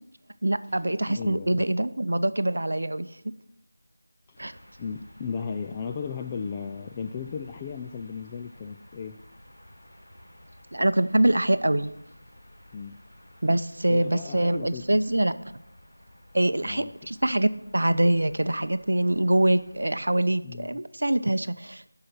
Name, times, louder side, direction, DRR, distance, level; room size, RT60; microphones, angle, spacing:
voice 1, 0.4-3.1 4.4-4.5 10.7-11.9 13.4-15.3 16.3-21.9, right 1 dB, 70° right, 13 dB, 0.6 m, -24 dB
voice 2, 1.1-1.7 4.3-4.4 4.8-9.2 12.7-13.0 13.9-14.8 16.6-16.9 20.4-20.8, left 6 dB, 15° left, 5 dB, 0.3 m, -35 dB
sound 1, 4.3-19.8, left 1 dB, 40° left, 3.3 m, -53 dB
12.5 x 5.7 x 5.8 m, 0.81 s
figure-of-eight pair, 170°, 0 cm